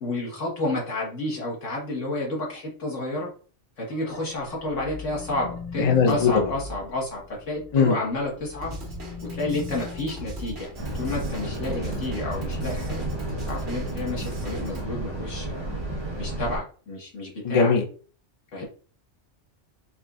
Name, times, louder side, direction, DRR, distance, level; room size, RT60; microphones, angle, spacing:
voice 1, 0.0-3.3 3.8-8.8 9.2-10.7 10.9-13.0 13.5-15.7 16.2-17.7 18.5-18.6, left 2 dB, 90° left, -3 dB, 1.6 m, -30 dB
sound 1, 3.9-7.8 8.2-11.5, left 4 dB, 65° left, 0.9 m, -40 dB
voice 2, 5.8-6.4 7.7-7.9 11.6-11.8 17.4-17.8, left 5 dB, 40° left, 3 dB, 0.5 m, -20 dB
Drum kit / Drum, 8.6-14.8, right 2 dB, 65° right, 1.2 m, -40 dB
sound 2, 10.7-16.6, right 1 dB, 25° right, 0.9 m, -31 dB
4.4 x 2.6 x 2.3 m, 0.41 s
omnidirectional pair, 1.2 m